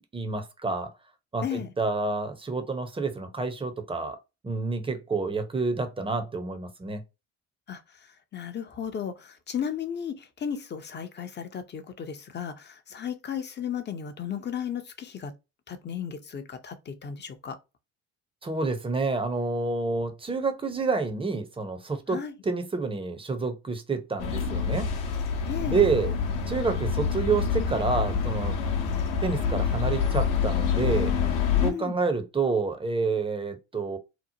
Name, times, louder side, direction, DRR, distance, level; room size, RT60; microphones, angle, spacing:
voice 1, 0.1-0.9 1.3-4.2 4.4-7.0 18.4-24.9 25.7-26.1 26.5-28.5 29.2-31.1 31.6-34.0, right 4 dB, 15° right, 0.7 m, -28 dB
voice 2, 1.4-1.7 7.7-7.8 8.3-15.3 15.7-17.6 22.1-22.3 25.5-25.9 31.6-32.0, left 8 dB, 30° left, 0.6 m, -34 dB
sound 1, 24.2-31.7, left 6 dB, 60° left, 0.8 m, -27 dB
2.9 x 2.0 x 2.7 m
hypercardioid pair, 55°, 37 cm